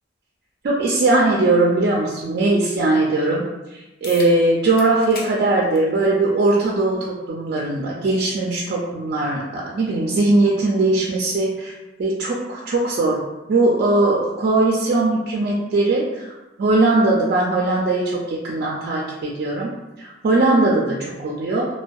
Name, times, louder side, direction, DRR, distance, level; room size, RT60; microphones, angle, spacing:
voice 1, 0.6-3.4 3.7-11.7 12.0-13.2 13.5-16.3 16.6-19.7 20.0-21.7, right 2 dB, 55° right, -4 dB, 0.4 m, -20 dB
sound 1, 4.0-4.3 4.8-5.3 5.7-5.9 7.0-7.1 12.0-12.1, left 3 dB, 55° left, 0.4 m, -36 dB
2.6 x 2.1 x 2.3 m, 1.0 s
head